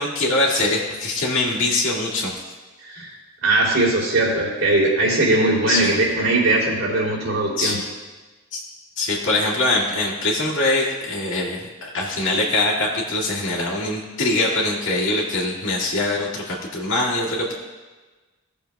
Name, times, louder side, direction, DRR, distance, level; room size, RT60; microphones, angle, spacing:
voice 1, 0.0-2.4 5.7-5.9 7.6-7.7 8.5-8.6 9.0-17.5, left 2 dB, 70° left, -6 dB, 2.0 m, -23 dB
voice 2, 2.8-3.1 3.4-7.8, right 2 dB, 80° right, -4 dB, 3.1 m, -20 dB
17.0 x 7.0 x 2.3 m, 1.3 s
head